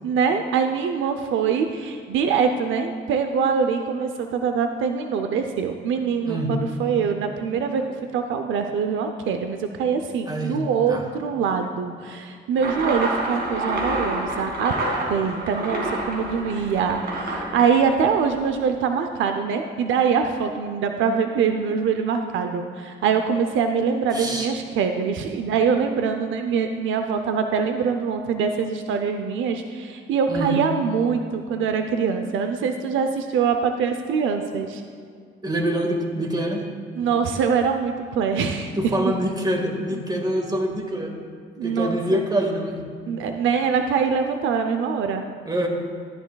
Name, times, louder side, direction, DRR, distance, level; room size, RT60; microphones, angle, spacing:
voice 1, 0.0-7.8 8.1-14.7 15.1-34.8 37.0-39.1 41.6-42.2 43.1-45.3, right 6 dB, 75° right, 6 dB, 0.6 m, -24 dB
voice 2, 10.3-11.0 24.1-24.5 30.3-30.6 35.4-36.7 38.8-41.1 41.6-42.8 45.4-45.7, right 1 dB, 20° right, 2 dB, 1.7 m, -25 dB
sound 1, 12.6-18.4, right 2 dB, 55° right, 2.2 m, -28 dB
13.5 x 10.0 x 2.3 m, 2.1 s
cardioid pair, 90°, 20 cm